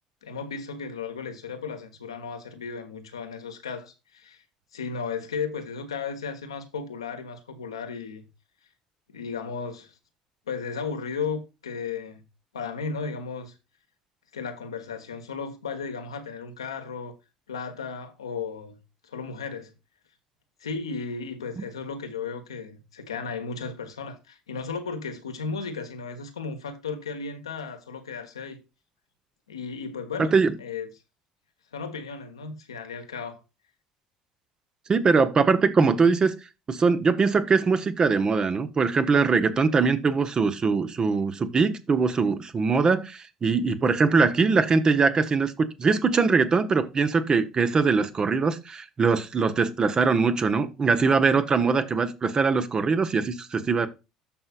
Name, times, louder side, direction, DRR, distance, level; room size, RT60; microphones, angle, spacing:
voice 1, 0.2-4.4 4.7-8.2 9.1-9.9 10.5-12.2 12.5-13.5 14.3-17.1 17.5-18.8 19.0-19.7 20.6-28.6 29.5-30.9 31.7-33.4 51.6-51.8, left 5 dB, 75° left, 1.4 m, -35 dB
voice 2, 30.2-30.5 34.9-36.3 36.7-53.9, right 4 dB, 30° right, 1.1 m, -22 dB
13.0 x 5.5 x 2.5 m
figure-of-eight pair, 60°, 3 cm